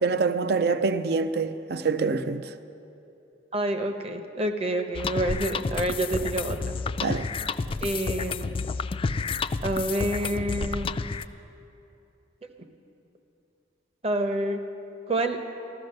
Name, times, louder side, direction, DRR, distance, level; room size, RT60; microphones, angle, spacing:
voice 1, 0.0-2.5 7.0-7.3, right 4 dB, 60° right, 0.5 m, -25 dB
voice 2, 3.5-6.8 7.8-8.6 9.6-11.0 14.0-14.6 15.1-15.4, right 1 dB, 35° right, 0.9 m, -28 dB
sound 1, 4.9-11.2, left 4 dB, 30° left, 0.3 m, -30 dB
15.0 x 13.5 x 6.6 m
head